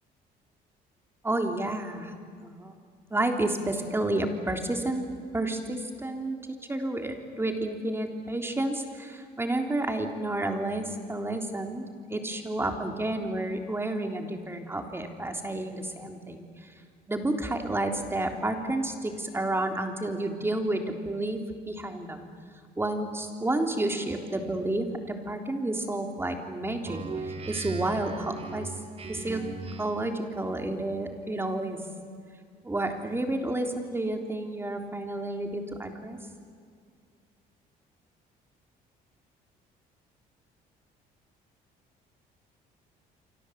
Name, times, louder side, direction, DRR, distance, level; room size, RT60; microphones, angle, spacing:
voice 1, 1.2-2.1 2.4-2.7 3.1-5.0 5.3-6.4 6.7-16.7 17.1-21.4 21.7-22.3 22.8-28.7 29.1-29.4 29.8-31.8 32.6-36.2, right 1 dB, 15° right, 4 dB, 3.5 m, -30 dB
Speech synthesizer, 26.8-30.2, right 4 dB, 35° right, 2.5 m, -38 dB
27.5 x 25.5 x 8.2 m, 2.2 s
cardioid pair, 110°, 17 cm